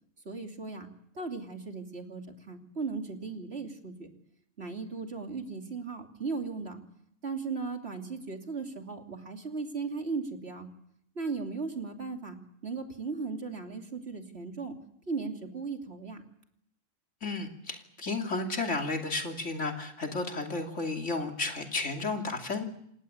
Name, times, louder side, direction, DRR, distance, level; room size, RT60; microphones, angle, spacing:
voice 1, 0.2-0.9 1.1-4.1 4.6-6.8 7.2-10.7 11.2-12.4 12.6-14.8 15.1-16.2, right 4 dB, 55° right, 3 dB, 3.1 m, -37 dB
voice 2, 17.2-22.7, left 3 dB, 75° left, 3 dB, 3.1 m, -33 dB
28.0 x 16.5 x 8.8 m, 0.73 s
omnidirectional pair, 1.3 m